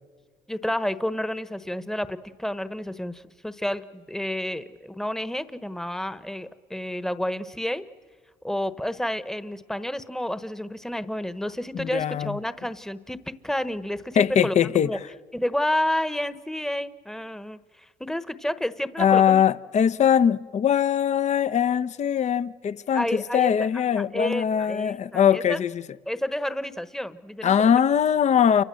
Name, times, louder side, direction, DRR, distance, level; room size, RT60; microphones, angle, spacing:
voice 1, 0.5-7.8 8.4-15.0 15.3-19.4 22.9-23.7 23.9-25.6 26.1-27.7, left 1 dB, 5° left, 1.1 m, -30 dB
voice 2, 11.7-12.4 14.2-14.9 19.0-25.8 27.4-28.6, left 8 dB, 45° left, 0.8 m, -21 dB
29.0 x 24.5 x 7.7 m
cardioid pair, 110°, 17 cm